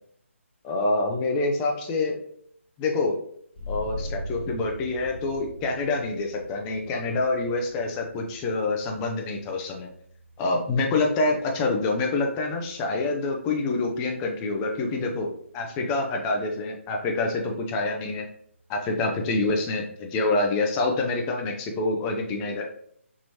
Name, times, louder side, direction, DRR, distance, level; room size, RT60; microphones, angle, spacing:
voice 1, 0.6-2.2 2.8-3.1 3.7-9.9 10.4-15.3 15.5-18.2 18.7-22.6, left 3 dB, 15° left, 2 dB, 0.4 m, -26 dB
sound 1, 3.5-14.8, left 1 dB, 40° left, 1.3 m, -42 dB
4.6 x 3.0 x 2.8 m, 0.65 s
figure-of-eight pair, 145°, 7 cm